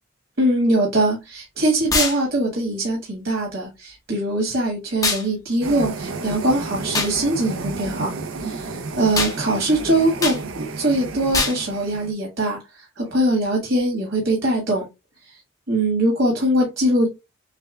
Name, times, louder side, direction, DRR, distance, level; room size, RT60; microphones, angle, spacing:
voice 1, 0.4-14.8 15.2-15.4 15.7-17.1, right 1 dB, 60° right, 1.6 m, -22 dB
sound 1, 1.9-2.2 5.0-5.3 6.9-7.1 9.2-9.4 10.2-10.4 11.3-11.6, left 3 dB, 15° left, 0.7 m, -22 dB
sound 2, 5.6-12.1, right 3 dB, 80° right, 0.7 m, -32 dB
6.6 x 2.3 x 2.2 m
head